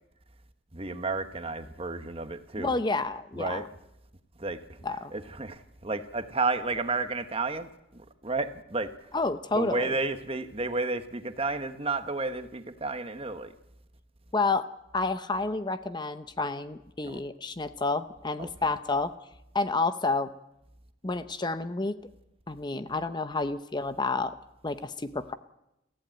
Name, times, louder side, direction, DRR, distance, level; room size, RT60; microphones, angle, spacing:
voice 1, 0.7-2.7 3.3-3.7 4.4-4.8 5.1-9.1 9.5-13.5 17.0-17.2 18.4-18.5, right 3 dB, 30° right, 9 dB, 1.2 m, -32 dB
voice 2, 2.6-3.6 4.8-5.1 9.1-10.0 14.3-14.7 14.9-19.1 19.5-20.3 21.0-22.0 22.5-24.3 24.6-25.3, left 3 dB, 20° left, 11 dB, 0.7 m, -29 dB
22.5 x 15.0 x 8.9 m, 0.88 s
head